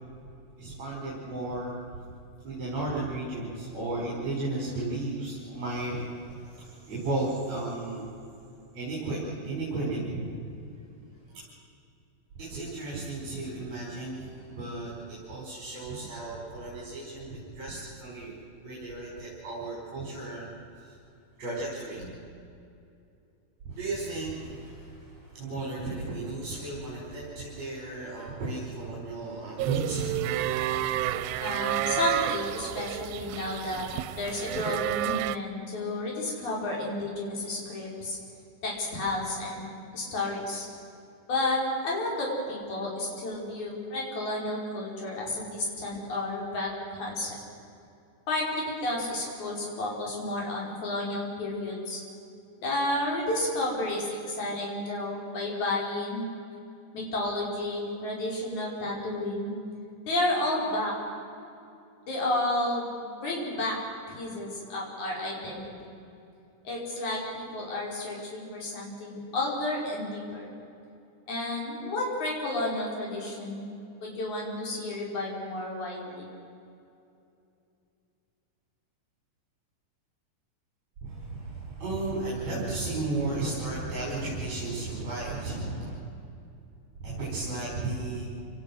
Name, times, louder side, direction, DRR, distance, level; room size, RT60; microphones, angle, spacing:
voice 1, 0.6-2.0 2.4-8.1 8.7-10.4 11.3-11.4 12.4-18.3 18.6-20.5 20.7-21.0 21.4-22.1 23.6-30.2 81.0-86.0 87.0-88.2, right 2 dB, 50° right, -6 dB, 6.5 m, -34 dB
sound 1, 29.6-35.4, right 13 dB, 85° right, 2.4 m, -30 dB
voice 2, 31.4-33.9 34.1-38.2 38.6-39.7 39.9-40.7 41.3-47.3 48.3-52.0 52.6-56.2 56.9-59.5 60.1-60.9 62.0-63.8 64.1-65.6 66.6-70.5 71.3-73.6 74.0-76.3, left 1 dB, 55° left, -3 dB, 6.0 m, -31 dB
28.5 x 18.5 x 6.3 m, 2.6 s
omnidirectional pair, 4.1 m